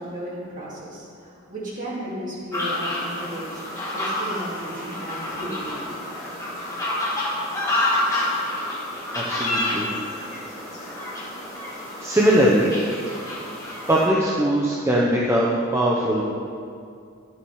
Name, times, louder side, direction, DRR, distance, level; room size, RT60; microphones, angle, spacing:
voice 1, 0.0-3.6 3.9-6.0, right 1 dB, 40° right, -7 dB, 2.7 m, -34 dB
sound 1, 2.5-14.1, left 1 dB, 15° left, 1.7 m, -28 dB
voice 2, 9.1-9.9 10.5-10.7 12.0-12.7 13.9-16.2, right 1 dB, 15° right, -5 dB, 0.7 m, -20 dB
10.5 x 7.1 x 4.6 m, 2.4 s
head